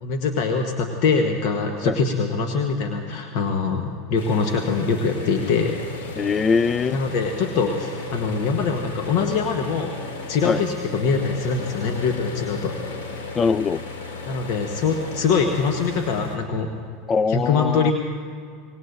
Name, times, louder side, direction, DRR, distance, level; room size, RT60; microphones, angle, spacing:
voice 1, 0.0-6.1 6.9-9.9 10.3-12.8 14.3-16.7 17.3-17.9, left 5 dB, 60° left, 4 dB, 1.1 m, -23 dB
sound 1, 4.2-16.4, left 3 dB, 75° left, 2.7 m, -35 dB
voice 2, 6.2-7.0 10.4-10.6 13.4-13.8 17.1-17.9, left 5 dB, 30° left, 18 dB, 0.4 m, -22 dB
25.0 x 19.5 x 2.6 m, 2.4 s
hypercardioid pair, 85°, 0 cm